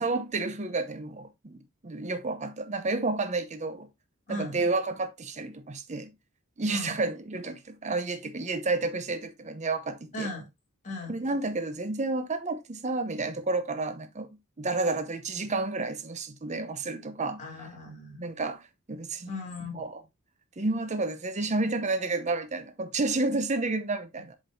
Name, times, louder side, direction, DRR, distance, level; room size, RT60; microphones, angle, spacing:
voice 1, 0.0-3.9 4.3-6.1 6.6-10.3 11.1-17.4 18.2-19.3 19.7-20.0 20.6-24.3, right 3 dB, 30° right, 0.7 m, -31 dB
voice 2, 4.3-4.6 6.7-6.9 10.1-10.5 10.8-11.1 17.4-18.2 19.3-19.8, left 1 dB, 35° left, 2.9 m, -36 dB
7.6 x 5.3 x 2.7 m
head